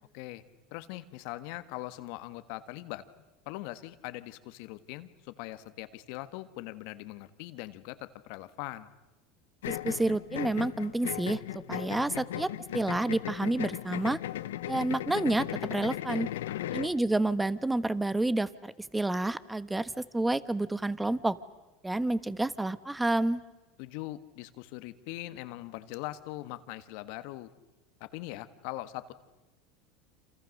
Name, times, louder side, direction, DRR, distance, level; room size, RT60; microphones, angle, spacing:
voice 1, 0.7-3.0 3.4-8.9 16.3-16.7 23.8-27.5 28.0-29.1, left 17 dB, 65° left, 12 dB, 1.5 m, -41 dB
sound 1, 9.6-17.0, left 13 dB, 90° left, 0.8 m, -37 dB
voice 2, 9.7-11.4 11.7-14.2 14.7-16.3 16.7-21.4 21.8-23.4, right 2 dB, 10° right, 15 dB, 1.2 m, -29 dB
28.5 x 27.5 x 6.6 m, 1.1 s
supercardioid pair, 110°, 0 cm